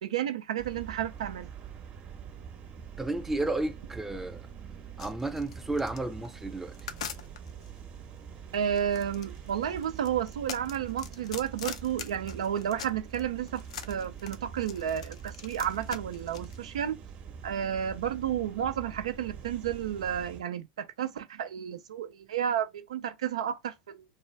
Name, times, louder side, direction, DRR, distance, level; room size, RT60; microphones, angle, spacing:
voice 1, 0.0-1.5 8.5-17.0 17.4-24.0, right 9 dB, 85° right, 0.4 m, -32 dB
sound 1, 0.6-20.4, right 7 dB, 45° right, 0.7 m, -45 dB
voice 2, 3.0-6.8, right 2 dB, 10° right, 0.5 m, -33 dB
sound 2, 5.0-7.7 8.5-13.2 13.5-16.6, left 7 dB, 85° left, 0.4 m, -42 dB
2.5 x 2.3 x 3.1 m
hypercardioid pair, 80°, 3 cm